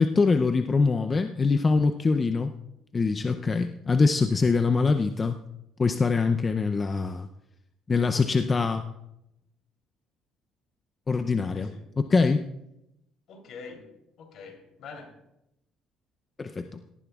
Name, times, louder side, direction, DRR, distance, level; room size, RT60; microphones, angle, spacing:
voice 1, 0.0-2.5 2.9-5.4 5.8-7.3 7.9-8.9 11.1-11.7 12.1-12.4 16.4-16.8, left 4 dB, 25° left, 7 dB, 0.6 m, -23 dB
voice 2, 11.5-11.9 13.3-15.2, left 4 dB, 60° left, 2 dB, 3.4 m, -45 dB
18.0 x 14.0 x 2.4 m, 0.85 s
cardioid pair, 120°, 0 cm